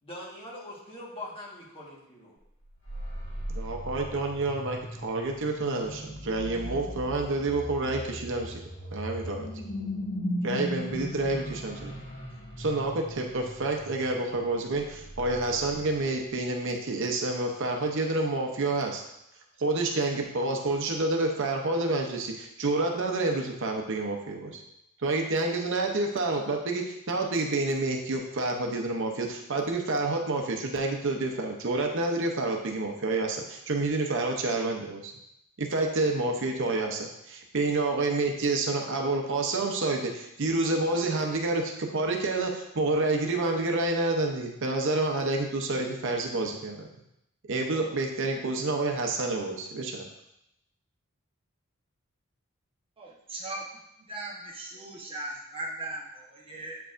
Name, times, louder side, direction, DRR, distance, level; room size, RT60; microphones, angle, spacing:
voice 1, 0.0-2.4, left 1 dB, 25° left, -5 dB, 1.5 m, -42 dB
sound 1, 2.6-16.1, equal, 60° left, 1.6 m, -38 dB
voice 2, 3.6-8.6 8.9-9.5 10.4-11.9 12.6-19.0 19.6-24.6 25.0-35.1 35.6-46.9 47.5-50.1, right 2 dB, 60° right, 2 dB, 0.7 m, -28 dB
voice 3, 53.0-53.6 54.1-56.8, right 2 dB, 25° right, -3 dB, 1.0 m, -38 dB
8.0 x 4.6 x 2.5 m, 0.81 s
head